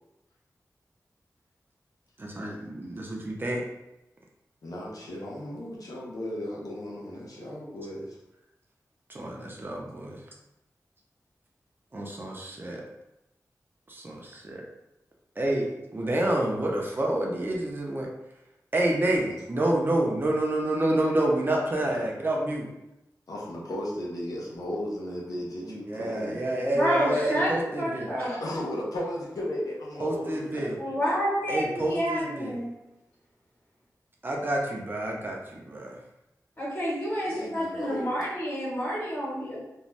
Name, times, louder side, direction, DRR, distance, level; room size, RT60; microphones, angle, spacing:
voice 1, 2.2-3.6 9.1-10.2 11.9-12.8 13.9-14.6 15.4-15.7 15.9-18.1 18.7-22.7 25.6-28.1 30.0-30.8 31.5-32.6 34.2-36.0, right 1 dB, 35° right, -1 dB, 0.6 m, -28 dB
voice 2, 4.6-8.1 21.7-22.1 23.3-26.4 28.4-31.0 37.3-38.1, left 1 dB, 75° left, -3 dB, 0.7 m, -35 dB
voice 3, 26.7-27.5 27.8-28.4 30.8-32.7 36.6-39.6, equal, 35° left, -9 dB, 1.3 m, -29 dB
2.6 x 2.2 x 3.2 m, 0.90 s
wide cardioid pair, 90°, 6 cm